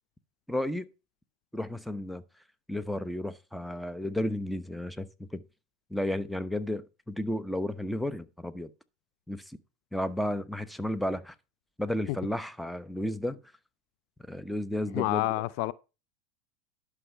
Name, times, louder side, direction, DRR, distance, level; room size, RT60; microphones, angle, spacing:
voice 1, 0.5-0.9 1.5-2.2 2.7-5.4 5.9-8.7 9.3-9.4 9.9-11.3 11.8-13.4 14.3-15.3, left 1 dB, ahead, 0.9 m, -32 dB
voice 2, 14.9-15.7, left 18 dB, 60° left, 0.4 m, -28 dB
11.0 x 6.3 x 4.5 m
hypercardioid pair, 90°, 0 cm